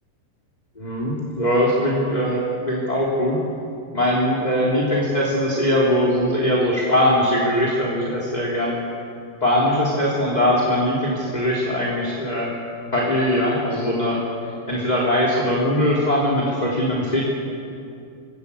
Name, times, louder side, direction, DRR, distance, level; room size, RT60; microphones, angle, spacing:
voice 1, 0.8-3.4 3.9-8.8 9.4-12.5 12.9-17.2, equal, 10° left, -4 dB, 2.9 m, -21 dB
25.5 x 20.5 x 8.5 m, 2.5 s
omnidirectional pair, 4.9 m